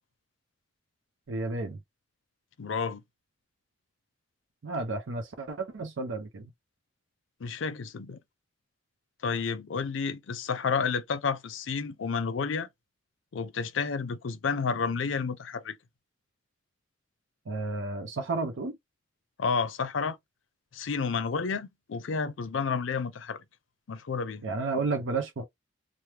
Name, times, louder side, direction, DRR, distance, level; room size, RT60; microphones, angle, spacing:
voice 1, 1.3-1.8 4.6-6.5 17.5-18.8 24.4-25.5, right 3 dB, 80° right, 0.5 m, -32 dB
voice 2, 2.6-3.0 7.4-8.2 9.2-12.7 13.3-15.8 19.4-20.2 20.7-23.4 23.9-24.4, left 5 dB, 80° left, 0.5 m, -30 dB
3.2 x 2.0 x 2.8 m
head